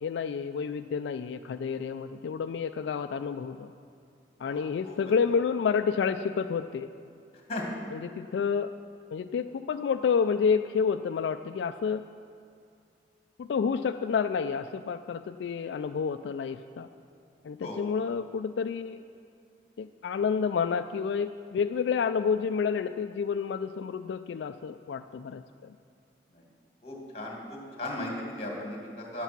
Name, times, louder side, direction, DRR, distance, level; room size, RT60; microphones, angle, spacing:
voice 1, 0.0-3.7 4.4-6.9 7.9-8.7 9.1-12.0 13.4-16.9 17.4-19.0 19.8-25.4, left 6 dB, 85° left, 9 dB, 0.3 m, -29 dB
voice 2, 4.4-5.0 7.5-7.8 17.6-17.8 26.8-29.2, left 1 dB, 35° left, -1 dB, 2.2 m, -37 dB
11.0 x 8.1 x 6.0 m, 2.4 s
head